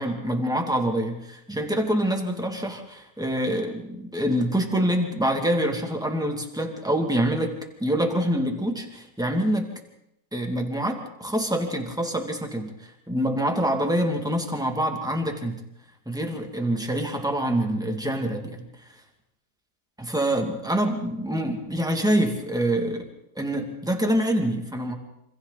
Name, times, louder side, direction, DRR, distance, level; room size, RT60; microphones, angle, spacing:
voice 1, 0.0-9.7 10.3-15.6 16.1-18.7 20.0-23.1 23.4-25.0, right 1 dB, ahead, 3 dB, 2.3 m, -26 dB
27.5 x 26.0 x 4.1 m, 0.82 s
omnidirectional pair, 1.7 m